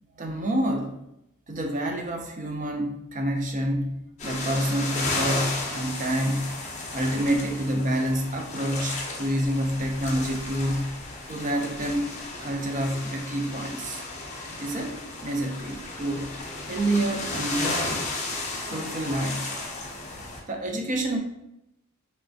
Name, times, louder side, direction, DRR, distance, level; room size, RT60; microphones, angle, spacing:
voice 1, 0.2-1.0 1.5-6.6 6.9-10.9 11.3-12.1 12.4-14.0 14.6-14.9 15.2-16.3 16.7-18.0 18.7-19.5 20.5-21.2, right 1 dB, 35° right, 3 dB, 0.4 m, -28 dB
sound 1, 4.2-20.4, left 2 dB, 30° left, 0.5 m, -34 dB
3.1 x 3.1 x 2.6 m, 0.83 s
head